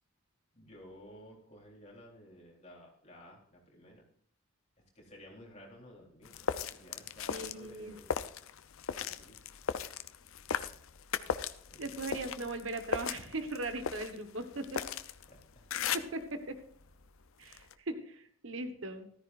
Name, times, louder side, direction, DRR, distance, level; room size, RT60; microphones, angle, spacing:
voice 1, 0.5-4.0 5.0-8.1 9.0-9.4 11.7-12.2 15.3-15.6, equal, 30° left, -2 dB, 3.6 m, -54 dB
sound 1, 6.2-16.3 16.7-17.7, left 7 dB, 70° left, 0.6 m, -38 dB
voice 2, 7.3-7.9 11.8-14.8 15.9-16.5 17.4-19.1, right 2 dB, 65° right, 8 dB, 1.2 m, -39 dB
14.0 x 13.5 x 2.5 m, 0.62 s
head